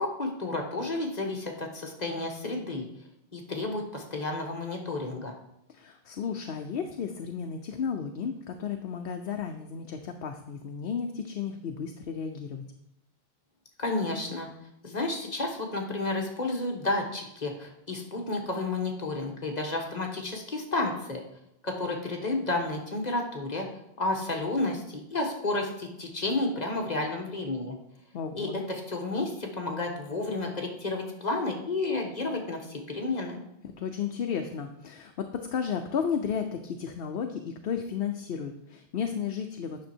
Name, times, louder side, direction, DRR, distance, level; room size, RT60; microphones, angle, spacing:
voice 1, 0.0-2.8 3.3-5.3 13.8-14.5 14.8-21.2 21.6-23.7 24.0-27.7 28.3-33.4, left 2 dB, 45° left, 2 dB, 1.4 m, -31 dB
voice 2, 5.7-12.6 28.1-28.6 33.6-39.9, left 7 dB, 70° left, 5 dB, 0.9 m, -33 dB
9.4 x 6.2 x 4.4 m, 0.81 s
omnidirectional pair, 1.0 m